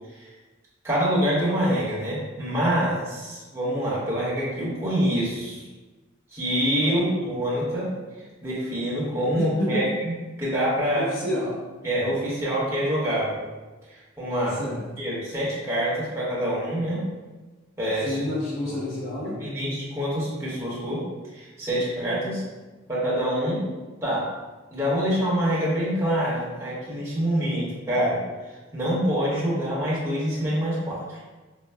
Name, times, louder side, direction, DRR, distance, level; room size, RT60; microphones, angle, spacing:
voice 1, 0.8-5.6 6.3-7.9 8.4-11.1 11.8-13.4 13.9-14.6 15.0-17.0 17.8-18.2 18.6-18.8 19.2-21.0 21.3-22.4 22.9-23.6 24.0-24.3 24.7-28.2 28.7-31.2, equal, 15° right, -9 dB, 1.1 m, -26 dB
voice 2, 9.3-9.8 10.9-11.6 14.6-14.8 18.0-19.4, left 1 dB, 85° left, -8 dB, 0.9 m, -29 dB
5.2 x 2.2 x 2.2 m, 1.2 s
head